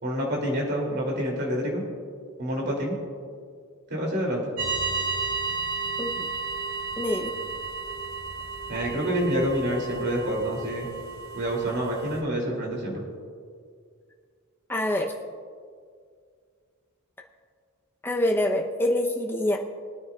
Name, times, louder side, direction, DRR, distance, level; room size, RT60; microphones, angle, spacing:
voice 1, 0.0-1.8 2.4-3.0 3.9-4.5 8.7-10.9 11.3-13.0, equal, 50° right, -2 dB, 2.9 m, -27 dB
sound 1, 4.6-12.2, right 4 dB, 75° right, 2.6 m, -33 dB
voice 2, 7.0-7.3 14.7-15.1 18.0-19.6, left 1 dB, 10° left, 1 dB, 0.8 m, -25 dB
22.5 x 9.3 x 2.5 m, 2.1 s
head